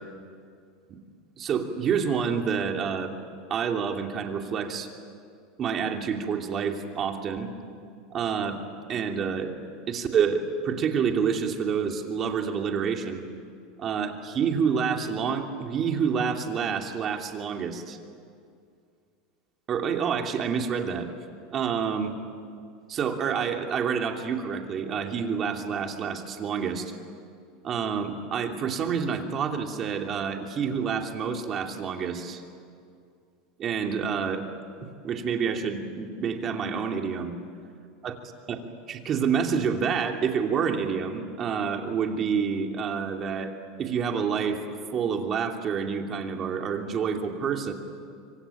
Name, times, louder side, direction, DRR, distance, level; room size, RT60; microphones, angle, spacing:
voice 1, 1.4-3.1 3.5-4.9 5.6-7.5 8.1-8.6 8.9-9.5 9.9-13.2 13.8-18.0 19.7-21.1 21.5-22.2 22.9-26.9 27.6-32.4 33.6-34.5 35.0-37.3 38.0-38.1 38.5-38.6 38.9-43.5 43.8-47.7, right 6 dB, 30° right, 3 dB, 2.8 m, -28 dB
25.5 x 25.0 x 9.2 m, 2.3 s
supercardioid pair, 145°, 0 cm